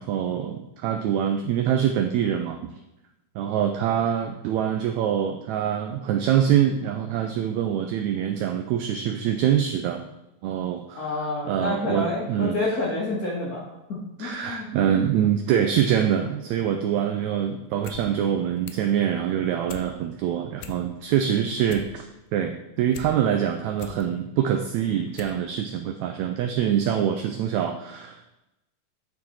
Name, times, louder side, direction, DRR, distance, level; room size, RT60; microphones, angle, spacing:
voice 1, 0.0-2.7 3.3-10.1 10.4-12.5 14.2-28.4, right 9 dB, 85° right, 5 dB, 1.6 m, -25 dB
voice 2, 10.9-14.7, left 2 dB, 45° left, -7 dB, 1.2 m, -29 dB
sound 1, 17.7-18.0 18.3-18.9 19.3-19.9 20.3-20.4 20.6-21.1 21.5-23.1 23.5-24.0 24.6-24.7 25.1-25.4 25.7-25.8, left 10 dB, 80° left, 2.1 m, -42 dB
9.5 x 4.3 x 4.2 m, 0.93 s
omnidirectional pair, 3.8 m